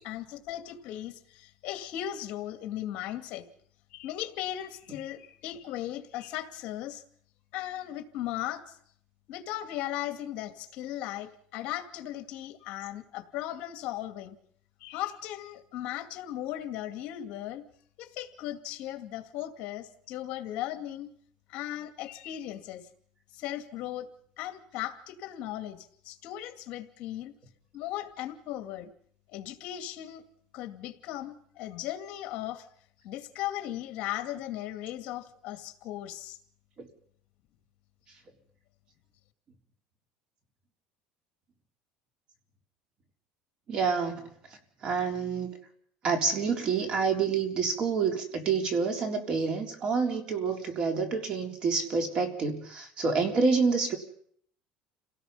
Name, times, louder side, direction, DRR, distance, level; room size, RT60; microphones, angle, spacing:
voice 1, 0.0-3.4 3.9-7.0 7.5-8.8 9.3-14.4 14.8-17.6 18.0-21.1 21.5-22.9 23.3-24.1 24.4-27.3 27.7-28.9 29.3-30.2 30.5-32.7 33.0-36.4, left 13 dB, 55° left, 7 dB, 2.3 m, -37 dB
voice 2, 43.7-44.3 44.8-45.6 46.0-54.0, right 5 dB, 35° right, 4 dB, 3.8 m, -28 dB
29.0 x 18.0 x 5.7 m, 0.64 s
cardioid pair, 155°, 3 cm